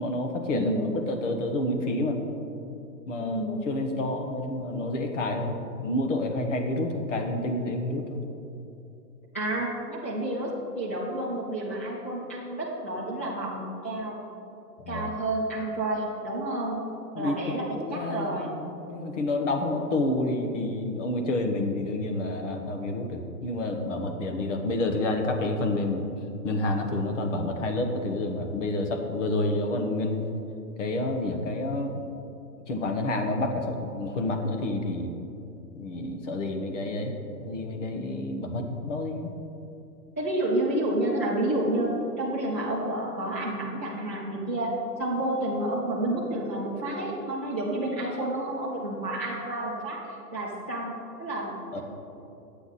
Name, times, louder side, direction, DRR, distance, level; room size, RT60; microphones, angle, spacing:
voice 1, 0.0-2.2 3.1-8.2 14.8-15.1 17.1-17.4 17.7-26.0 26.4-30.3 30.8-31.9 32.7-35.1 35.7-39.4 51.7-51.8, left 2 dB, 50° left, 4 dB, 1.3 m, -29 dB
voice 2, 0.5-1.0 3.2-3.6 9.3-14.2 14.9-16.8 17.2-18.6 40.2-44.7 45.0-51.6, right 1 dB, 10° left, -9 dB, 0.4 m, -30 dB
11.0 x 8.3 x 4.1 m, 2.8 s
hypercardioid pair, 155°, 49 cm